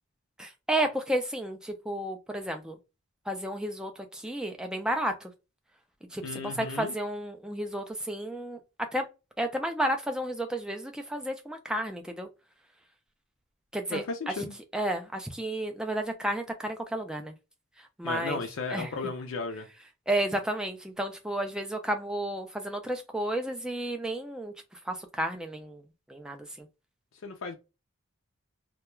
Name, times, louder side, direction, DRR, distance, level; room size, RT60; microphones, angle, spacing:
voice 1, 0.4-2.8 3.3-5.3 6.1-8.6 8.9-9.0 9.4-12.3 13.7-14.3 14.7-17.3 18.0-18.4 18.7-18.9 20.1-24.5 24.9-25.8 26.1-26.7, right 1 dB, 5° right, 0.3 m, -32 dB
voice 2, 6.2-6.9 13.9-14.5 18.0-19.7 27.2-27.6, left 4 dB, 70° left, 0.4 m, -35 dB
2.3 x 2.2 x 2.9 m
head